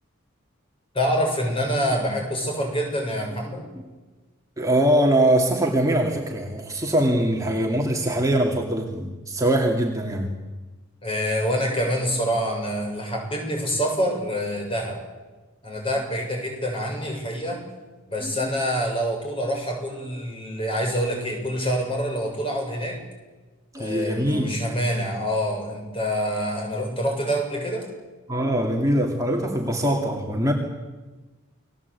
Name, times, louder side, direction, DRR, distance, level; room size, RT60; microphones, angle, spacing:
voice 1, 0.9-3.6 11.0-15.0 15.6-17.6 18.1-23.0 23.7-27.9, equal, 25° left, 1 dB, 7.5 m, -26 dB
voice 2, 4.6-10.3 18.2-18.5 23.7-24.5 28.3-30.5, right 1 dB, 15° right, 0 dB, 2.5 m, -22 dB
29.5 x 20.0 x 8.4 m, 1.2 s
head